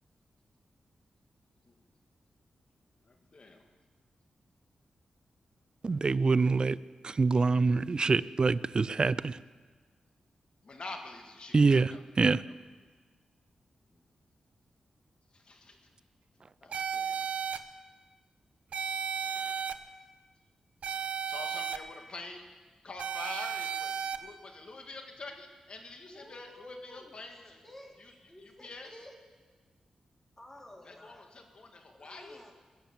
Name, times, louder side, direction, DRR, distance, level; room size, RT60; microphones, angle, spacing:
voice 1, 3.0-3.7 10.6-12.5 13.9-14.0 15.3-15.9 16.6-17.3 21.2-22.5 22.8-27.6 28.0-29.0 30.8-32.4, left 3 dB, 50° left, 2.2 m, -47 dB
voice 2, 5.8-6.8 7.0-9.4 11.5-11.9 12.2-12.4, right 4 dB, 40° right, 0.4 m, -25 dB
sound 1, 16.7-17.6 18.7-19.7 20.8-21.8 23.0-24.2, right 6 dB, 75° right, 0.7 m, -34 dB
voice 3, 26.1-27.2 27.6-27.9 28.3-29.1 30.4-31.2 31.9-32.5, left 1 dB, 20° left, 3.2 m, -51 dB
21.0 x 7.3 x 7.4 m
cardioid pair, 65°, 2 cm